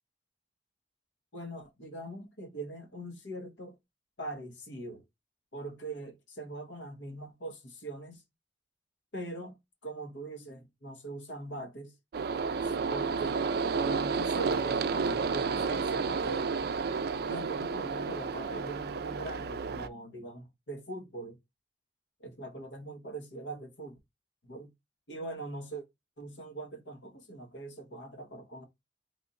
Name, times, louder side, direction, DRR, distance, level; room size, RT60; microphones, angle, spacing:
voice 1, 1.3-3.8 4.2-5.0 5.5-8.2 9.1-9.6 9.8-12.0 12.6-13.4 13.8-16.6 17.2-21.4 22.2-24.0 24.4-24.7 25.1-25.8 26.2-28.7, right 2 dB, 70° left, 1.1 m, -42 dB
sound 1, 12.1-19.9, right 5 dB, 55° right, 0.4 m, -31 dB
3.4 x 2.4 x 3.9 m
head